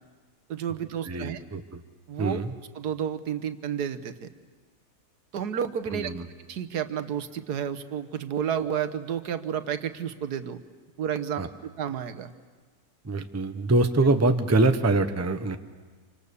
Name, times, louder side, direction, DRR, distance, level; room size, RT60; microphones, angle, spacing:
voice 1, 0.5-1.4 2.1-2.4 2.7-4.3 5.3-6.1 6.5-10.6 11.0-12.3, right 8 dB, 85° right, 10 dB, 1.6 m, -31 dB
voice 2, 1.0-1.8 2.2-2.5 5.9-6.3 11.4-11.5 13.0-15.6, right 2 dB, 15° right, 8 dB, 0.7 m, -24 dB
27.0 x 25.5 x 6.9 m, 1.5 s
omnidirectional pair, 1.7 m